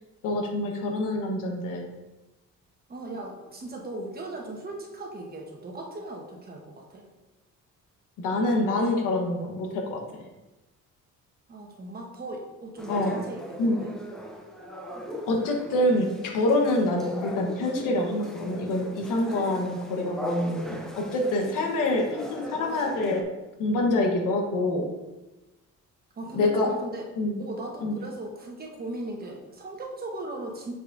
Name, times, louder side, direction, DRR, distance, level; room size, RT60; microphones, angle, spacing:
voice 1, 0.2-1.9 8.2-10.2 12.9-13.2 13.6-13.8 15.3-23.3 23.6-24.9 26.3-26.7 27.2-27.4 27.8-28.0, left 1 dB, 90° left, 2 dB, 1.2 m, -26 dB
voice 2, 2.9-7.1 11.5-13.9 26.1-27.1 27.4-30.7, right 2 dB, 30° right, 0 dB, 1.1 m, -38 dB
sound 1, 12.8-23.2, equal, ahead, 0.6 m, -39 dB
6.6 x 5.7 x 2.6 m, 1.1 s
cardioid pair, 130°, 31 cm